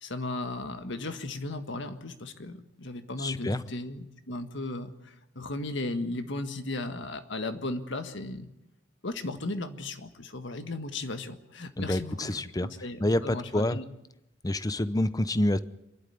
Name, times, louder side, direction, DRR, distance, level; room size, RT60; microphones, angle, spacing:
voice 1, 0.0-8.5 9.0-13.8, left 2 dB, 65° left, 8 dB, 1.7 m, -36 dB
voice 2, 3.2-3.6 11.8-12.7 13.0-13.8 14.4-15.6, left 1 dB, 20° left, 14 dB, 0.7 m, -27 dB
26.5 x 12.0 x 9.4 m, 0.88 s
head